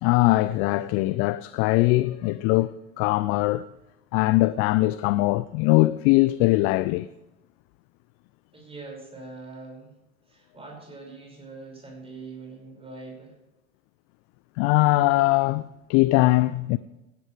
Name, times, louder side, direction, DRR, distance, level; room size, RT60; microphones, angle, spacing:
voice 1, 0.0-3.6 4.1-7.1 14.6-16.8, left 19 dB, 35° left, 0.4 m, -21 dB
voice 2, 8.5-10.0 10.2-13.4, right 3 dB, 15° right, 5.6 m, -43 dB
17.0 x 11.5 x 3.3 m
figure-of-eight pair, 80°, 39 cm